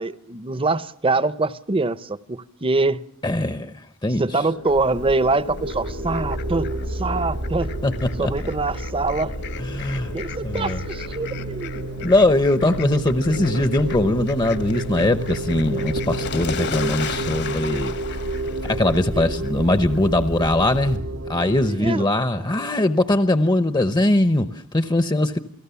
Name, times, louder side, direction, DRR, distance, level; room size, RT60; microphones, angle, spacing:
voice 1, 0.0-3.0 4.2-7.7 8.2-9.3 10.1-11.9 19.1-19.3 21.6-22.0, right 3 dB, 25° right, 0.8 m, -24 dB
voice 2, 3.2-3.7 4.0-4.2 7.8-8.3 9.6-10.1 10.4-10.8 12.0-18.0 18.6-21.0 21.3-25.4, left 1 dB, 20° left, 0.8 m, -21 dB
sound 1, 4.3-18.9, left 2 dB, 75° left, 1.4 m, -40 dB
Fowl, 4.7-21.0, left 4 dB, 55° left, 1.4 m, -35 dB
sound 2, 5.6-21.7, right 2 dB, 80° right, 1.8 m, -30 dB
29.0 x 17.5 x 7.0 m
head